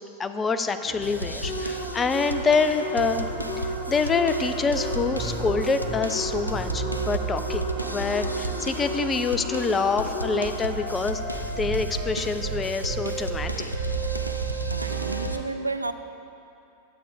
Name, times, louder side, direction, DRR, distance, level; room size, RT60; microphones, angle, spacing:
voice 1, 0.2-3.3 3.6-7.6 7.9-13.7, left 4 dB, 20° left, 9 dB, 0.4 m, -26 dB
sound 1, 0.9-15.4, right 5 dB, 45° right, 1.2 m, -34 dB
sound 2, 1.0-15.4, equal, 90° left, 0.4 m, -35 dB
sound 3, 1.4-10.8, equal, 70° left, 1.9 m, -34 dB
voice 2, 14.7-15.9, right 2 dB, 85° right, 9 dB, 0.3 m, -31 dB
11.0 x 7.4 x 3.5 m, 2.7 s
figure-of-eight pair, 90°, 0 cm